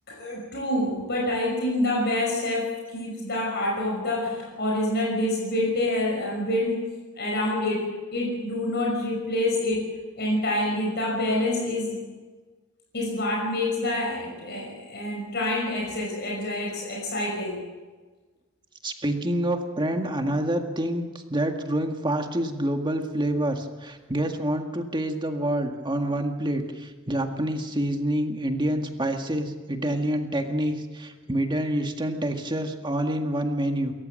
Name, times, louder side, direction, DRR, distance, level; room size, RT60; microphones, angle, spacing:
voice 1, 0.1-6.9 7.2-9.9 10.2-12.0 12.9-17.6, left 1 dB, 50° left, -1 dB, 5.6 m, -27 dB
voice 2, 18.8-33.9, right 1 dB, 20° right, 5 dB, 1.9 m, -27 dB
28.0 x 14.5 x 7.7 m, 1.3 s
head